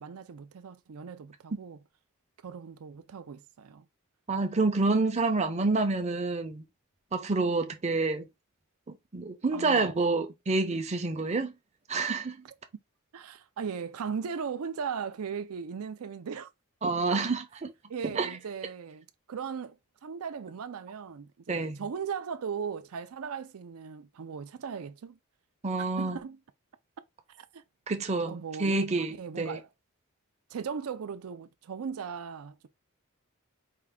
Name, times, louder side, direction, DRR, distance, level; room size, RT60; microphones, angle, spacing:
voice 1, 0.0-1.8 2.4-3.8 9.5-9.9 13.1-16.5 17.1-17.2 17.9-19.8 20.0-25.2 26.0-26.4 27.4-27.6 28.2-28.9 29.2-29.7 30.5-32.7, right 6 dB, 75° right, 0.4 m, -38 dB
voice 2, 4.3-6.7 7.1-8.3 8.9-11.5 11.9-12.4 16.8-17.7 18.0-18.3 21.5-21.8 25.6-26.2 27.9-29.6, right 3 dB, 30° right, 0.6 m, -28 dB
4.5 x 2.3 x 3.6 m
head